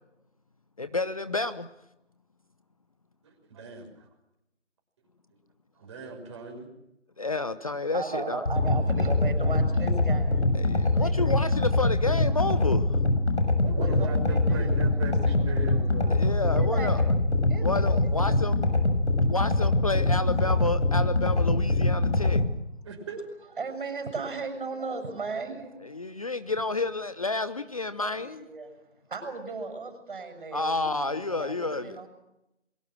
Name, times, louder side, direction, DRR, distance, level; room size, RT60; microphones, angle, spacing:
voice 1, 0.8-1.7 7.2-8.4 10.5-13.0 16.1-17.1 17.6-18.6 19.3-22.4 25.8-28.4 30.5-32.1, left 3 dB, 30° left, 12 dB, 0.9 m, -30 dB
voice 2, 3.2-4.1 5.7-6.7 13.6-16.1 22.8-23.2, right 3 dB, 25° right, 2 dB, 6.2 m, -39 dB
voice 3, 7.9-11.4 13.8-14.7 15.1-16.2 16.5-17.1 17.5-18.4 18.6-18.7 19.2-19.6 20.3-20.4 23.5-26.3 28.0-28.7 29.1-30.7 30.9-32.1, right 4 dB, 45° right, 8 dB, 7.2 m, -37 dB
sound 1, 8.5-22.5, left 2 dB, 70° left, 6.8 m, -24 dB
27.5 x 23.0 x 6.3 m, 0.86 s
figure-of-eight pair, 160°, 36 cm